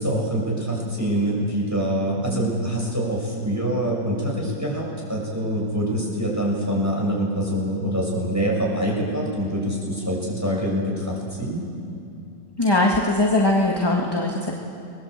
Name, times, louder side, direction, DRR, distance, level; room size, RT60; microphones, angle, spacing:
voice 1, 0.0-11.6, equal, 10° right, -3 dB, 7.2 m, -25 dB
voice 2, 12.6-14.5, left 2 dB, 15° left, -1 dB, 1.8 m, -20 dB
29.0 x 21.0 x 8.2 m, 2.6 s
omnidirectional pair, 1.9 m